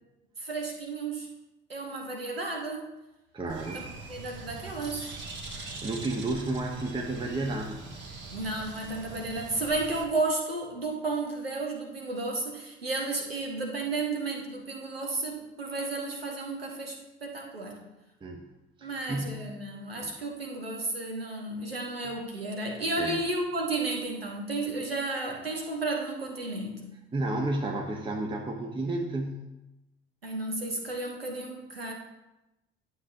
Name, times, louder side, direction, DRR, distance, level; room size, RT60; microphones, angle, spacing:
voice 1, 0.4-1.3 1.7-2.9 3.7-5.1 8.3-16.9 17.2-17.8 18.8-26.9 30.2-31.9, right 2 dB, 85° right, 1 dB, 1.3 m, -33 dB
voice 2, 3.3-3.8 5.6-7.8 18.2-18.4 18.8-19.5 20.0-20.1 23.0-23.2 27.1-29.5, right 2 dB, 15° right, 1 dB, 0.9 m, -32 dB
Bird, 3.5-10.0, right 3 dB, 40° right, 1.5 m, -42 dB
11.5 x 7.3 x 2.7 m, 0.97 s
figure-of-eight pair, 60°, 29 cm